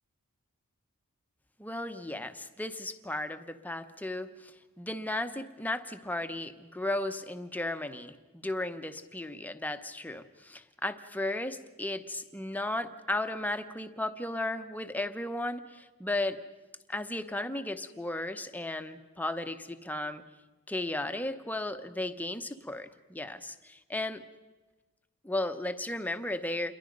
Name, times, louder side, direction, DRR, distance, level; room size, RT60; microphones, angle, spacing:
voice 1, 1.6-4.5 4.8-16.4 16.9-20.2 20.7-24.2 25.2-26.7, left 1 dB, 5° left, 8 dB, 0.9 m, -35 dB
28.0 x 22.0 x 5.3 m, 1.2 s
head